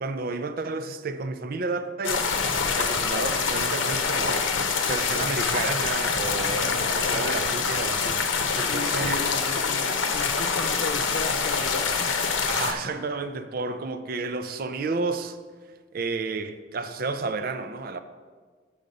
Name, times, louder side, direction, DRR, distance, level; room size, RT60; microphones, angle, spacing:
voice 1, 0.0-2.3 2.7-4.5 4.9-8.2 8.5-9.3 12.5-15.4 15.9-18.0, right 3 dB, 50° right, 0.4 m, -31 dB
sound 1, 2.0-12.7, left 5 dB, 90° left, 0.8 m, -25 dB
voice 2, 6.6-7.5 8.7-12.3, left 3 dB, 55° left, 0.4 m, -36 dB
8.0 x 5.0 x 5.3 m
head